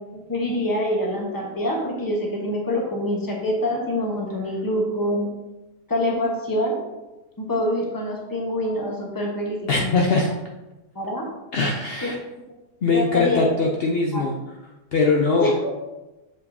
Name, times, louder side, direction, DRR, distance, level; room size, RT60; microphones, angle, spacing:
voice 1, 0.1-5.3 5.9-6.8 7.4-10.2 10.9-11.3 12.0-12.1 12.8-13.5 14.1-14.2 15.3-15.7, left 1 dB, 15° left, -1 dB, 0.9 m, -25 dB
voice 2, 9.7-10.3 11.5-12.2 12.8-14.3 14.9-15.5, left 3 dB, 70° left, -1 dB, 0.5 m, -21 dB
7.3 x 5.1 x 2.7 m, 1.0 s
omnidirectional pair, 1.8 m